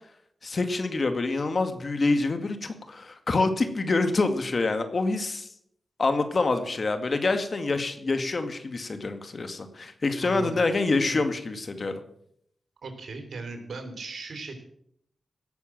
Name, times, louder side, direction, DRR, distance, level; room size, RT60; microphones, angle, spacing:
voice 1, 0.4-5.5 6.0-12.0, left 3 dB, 55° left, 8 dB, 2.1 m, -26 dB
voice 2, 10.2-10.7 11.0-11.3 12.8-14.6, right 3 dB, 70° right, 5 dB, 3.4 m, -38 dB
17.5 x 7.2 x 7.8 m, 0.71 s
cardioid pair, 45°, 0 cm